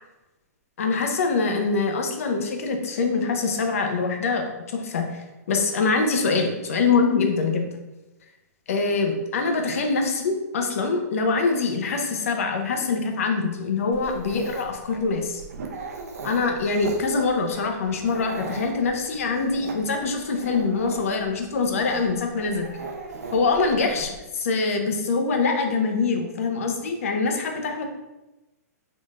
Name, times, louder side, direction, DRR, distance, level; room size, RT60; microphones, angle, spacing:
voice 1, 0.8-5.1 5.5-7.7 8.7-15.4 16.2-22.7 23.3-27.9, left 4 dB, 55° left, 4 dB, 0.7 m, -24 dB
Dog, 13.9-24.2, right 3 dB, 65° right, 0.7 m, -39 dB
3.9 x 3.7 x 2.5 m, 1.0 s
hypercardioid pair, 165°, 9 cm